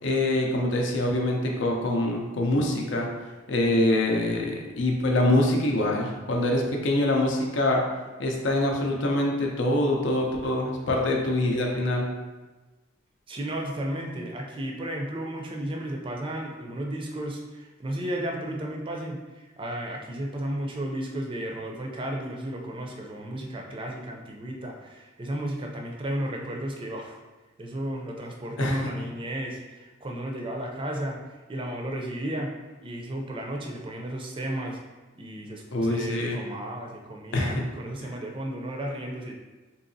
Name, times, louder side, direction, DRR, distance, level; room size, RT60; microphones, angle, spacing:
voice 1, 0.0-3.1 3.5-7.8 8.2-12.1 28.6-28.9 35.7-36.4 37.3-37.7 38.0-38.1, left 1 dB, 65° left, 0 dB, 0.5 m, -25 dB
voice 2, 13.3-19.2 19.6-27.2 27.6-31.2 31.5-32.5 32.8-34.8 35.2-39.3, right 1 dB, 25° right, 0 dB, 0.4 m, -33 dB
3.8 x 2.8 x 2.6 m, 1.2 s
head